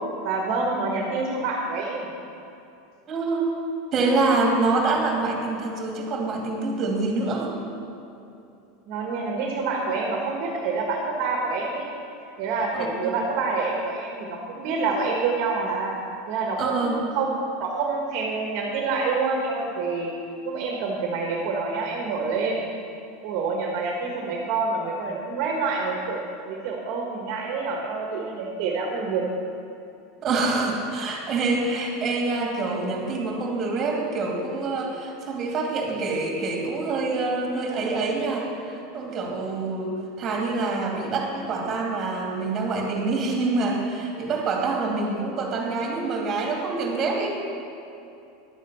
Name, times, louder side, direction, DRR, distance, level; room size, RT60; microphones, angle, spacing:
voice 1, 0.2-2.1 8.9-11.9 12.4-15.9 16.3-17.3 17.6-20.1 20.4-22.7 23.2-26.2 26.4-29.2, right 4 dB, 55° right, 0 dB, 1.6 m, -27 dB
voice 2, 3.1-3.5 3.9-7.6 12.7-13.2 16.6-17.0 30.2-47.4, right 3 dB, 30° right, 0 dB, 2.6 m, -26 dB
11.0 x 7.5 x 7.0 m, 2.7 s
supercardioid pair, 135°, 0 cm